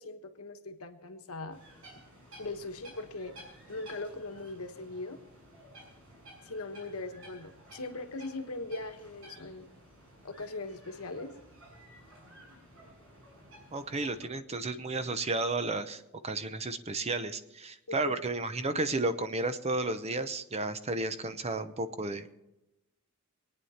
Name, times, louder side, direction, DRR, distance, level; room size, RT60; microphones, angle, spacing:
voice 1, 0.0-1.6 2.4-3.3 3.7-5.2 6.4-9.7 10.2-11.3 17.9-18.1 18.7-18.8, left 2 dB, 75° left, 6 dB, 1.3 m, -40 dB
sound 1, 1.5-14.3, right 1 dB, 70° right, 6.4 m, -54 dB
voice 2, 13.7-22.3, right 2 dB, 30° right, 10 dB, 0.8 m, -33 dB
23.5 x 9.5 x 4.3 m, 0.98 s
head